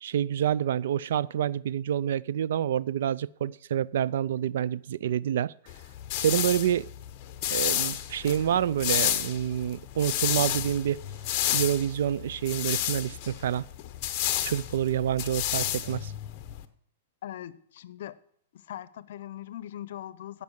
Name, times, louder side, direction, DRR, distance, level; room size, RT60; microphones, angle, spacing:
voice 1, 0.0-5.5 6.2-6.9 7.5-11.0 11.5-13.6 14.4-16.1, right 10 dB, 65° right, 0.4 m, -28 dB
sound 1, 5.7-16.7, left 12 dB, 35° left, 0.9 m, -31 dB
voice 2, 17.2-18.2 18.5-20.4, left 12 dB, 60° left, 0.7 m, -40 dB
15.5 x 5.4 x 7.3 m
hypercardioid pair, 155°, 0 cm